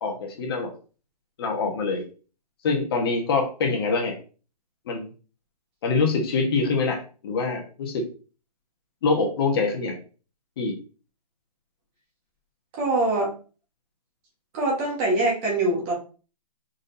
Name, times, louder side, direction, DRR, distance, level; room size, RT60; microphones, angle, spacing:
voice 1, 0.0-0.7 1.4-2.0 2.6-4.2 4.9-5.1 5.8-8.0 9.0-9.9 10.6-10.7, left 4 dB, 35° left, 1 dB, 1.3 m, -25 dB
voice 2, 12.7-13.3 14.5-15.9, right 2 dB, 20° right, -2 dB, 1.3 m, -23 dB
4.8 x 4.2 x 2.6 m, 0.35 s
hypercardioid pair, 165°, 20 cm